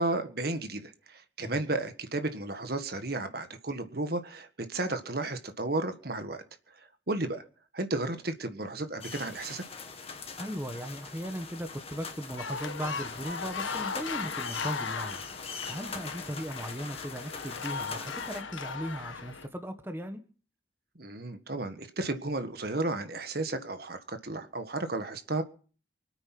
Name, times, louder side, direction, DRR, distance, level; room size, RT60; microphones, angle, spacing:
voice 1, 0.0-6.4 7.1-7.4 7.7-9.6 20.9-25.4, right 2 dB, 50° right, 8 dB, 1.6 m, -33 dB
sound 1, 9.0-18.4, left 5 dB, 30° left, 1.8 m, -42 dB
voice 2, 10.4-15.2 15.7-20.2, equal, 10° right, 6 dB, 1.5 m, -38 dB
sound 2, 12.4-19.5, left 5 dB, 85° left, 1.7 m, -38 dB
24.5 x 9.1 x 6.0 m, 0.40 s
head